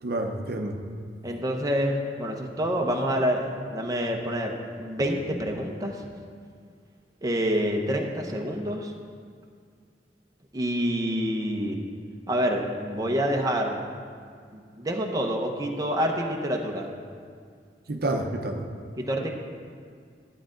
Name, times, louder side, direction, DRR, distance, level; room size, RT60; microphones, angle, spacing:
voice 1, 0.0-0.8 17.9-18.6 19.1-19.3, right 1 dB, 60° right, 4 dB, 0.8 m, -29 dB
voice 2, 1.2-6.0 7.2-8.9 10.5-11.8 12.3-13.8 14.5-16.9 19.0-19.3, equal, 20° right, 1 dB, 0.8 m, -27 dB
11.5 x 8.5 x 3.8 m, 2.1 s
head